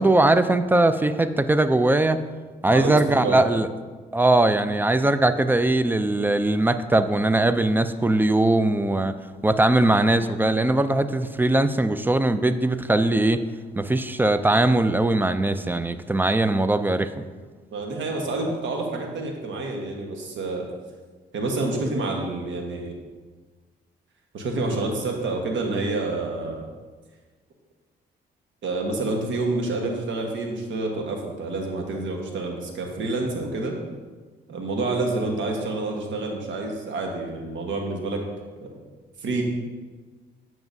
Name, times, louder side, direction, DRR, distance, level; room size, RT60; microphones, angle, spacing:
voice 1, 0.0-2.2 2.6-3.7 4.1-9.2 9.4-13.4 13.8-17.1, right 2 dB, 10° right, 11 dB, 0.3 m, -20 dB
voice 2, 2.7-3.4 17.7-20.7 21.3-22.9 24.3-26.7 28.6-33.7 34.5-38.2 38.6-38.8 39.2-39.4, right 2 dB, 70° right, 1 dB, 1.3 m, -28 dB
9.1 x 5.8 x 2.7 m, 1.4 s
cardioid pair, 90°, 20 cm